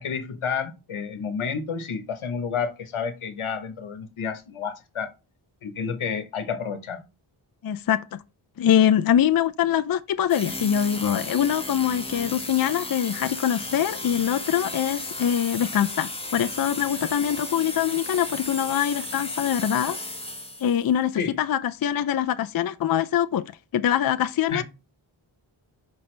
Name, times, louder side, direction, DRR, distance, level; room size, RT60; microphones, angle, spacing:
voice 1, 0.0-5.1 5.6-7.1 21.1-21.3 24.5-24.6, left 6 dB, 80° left, 1.1 m, -30 dB
voice 2, 7.6-8.2 8.6-20.0 20.6-23.4 23.7-24.6, left 9 dB, 50° left, 0.5 m, -23 dB
sound 1, 10.3-20.9, left 2 dB, 10° left, 1.2 m, -34 dB
6.0 x 5.3 x 3.2 m
wide cardioid pair, 115°, 48 cm